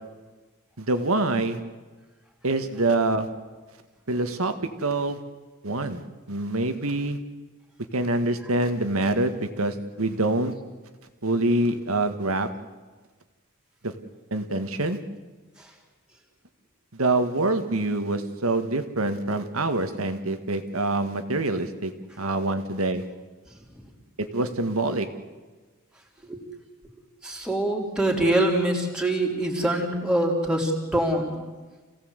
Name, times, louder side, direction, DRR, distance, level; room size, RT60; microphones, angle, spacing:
voice 1, 0.8-1.6 2.4-3.3 4.1-4.5 4.8-5.2 5.6-6.0 6.3-7.2 7.9-10.5 11.2-12.5 13.8-13.9 14.3-15.0 16.9-21.9 22.2-23.0 24.2-25.1, right 2 dB, 80° right, 8 dB, 1.9 m, -25 dB
voice 2, 27.2-31.4, right 1 dB, 5° right, 0 dB, 3.3 m, -24 dB
27.5 x 17.0 x 8.2 m, 1.3 s
head